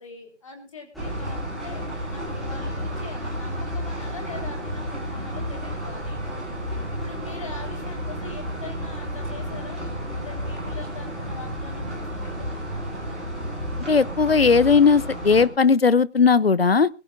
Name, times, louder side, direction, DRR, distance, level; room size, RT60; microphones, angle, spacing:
voice 1, 0.0-6.2 6.9-9.9 10.1-12.5, left 4 dB, 30° left, 3 dB, 4.0 m, -42 dB
sound 1, 0.9-15.5, equal, ahead, 2.6 m, -31 dB
voice 2, 13.9-16.9, left 5 dB, 60° left, 20 dB, 0.8 m, -17 dB
22.5 x 14.5 x 2.5 m, 0.33 s
figure-of-eight pair, 165°, 35 cm